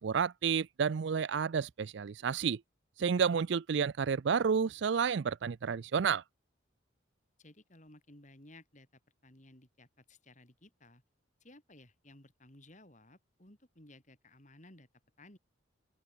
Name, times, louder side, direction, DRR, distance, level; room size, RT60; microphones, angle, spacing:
voice 1, 0.0-2.6 3.0-6.2, right 6 dB, 60° right, 0.4 m, -30 dB
voice 2, 7.4-8.9 9.2-11.0 11.4-14.9 15.2-15.4, left 1 dB, 35° left, 4.4 m, -57 dB
open air
head